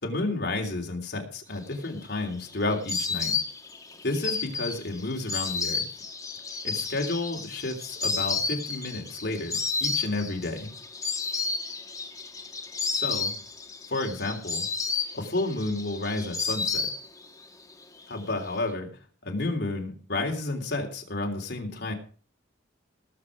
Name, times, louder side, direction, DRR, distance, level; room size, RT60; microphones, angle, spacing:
voice 1, 0.0-3.3 4.0-5.8 6.6-10.7 12.9-13.3 13.9-14.7 15.1-16.9 18.1-18.9 19.2-21.9, left 2 dB, 60° left, 2 dB, 3.4 m, -31 dB
Insect, 1.7-17.4 17.7-18.5, left 4 dB, 20° left, 1.7 m, -32 dB
19.0 x 7.7 x 5.0 m, 0.41 s
head